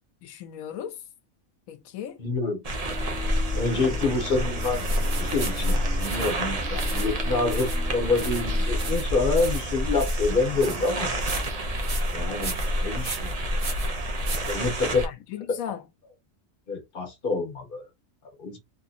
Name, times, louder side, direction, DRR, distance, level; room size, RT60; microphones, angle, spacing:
voice 1, 0.2-1.0 1.7-2.2 14.8-15.8, left 10 dB, 85° left, 1.0 m, -37 dB
voice 2, 2.2-2.6 3.5-4.8 5.2-11.1 12.1-13.5 14.5-15.0 16.7-17.9 18.4-18.6, left 3 dB, 45° left, 1.2 m, -27 dB
sound 1, 2.6-15.1, equal, 35° right, 0.6 m, -28 dB
sound 2, 2.8-9.0, left 4 dB, 5° left, 0.3 m, -42 dB
sound 3, 4.6-15.1, right 2 dB, 60° right, 1.2 m, -37 dB
3.2 x 2.8 x 2.4 m
omnidirectional pair, 1.4 m